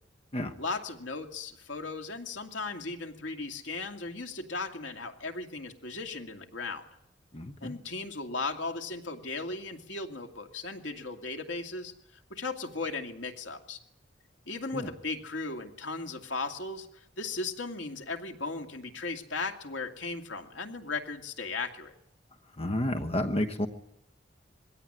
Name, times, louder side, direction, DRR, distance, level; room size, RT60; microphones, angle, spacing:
voice 1, 0.6-6.8 7.6-11.9 12.3-13.8 14.5-16.9 17.2-21.9, left 3 dB, 80° left, 4 dB, 2.4 m, -36 dB
voice 2, 7.3-7.8 14.7-14.9 22.6-23.7, left 1 dB, 35° left, 9 dB, 1.2 m, -30 dB
21.5 x 17.0 x 9.9 m, 0.80 s
head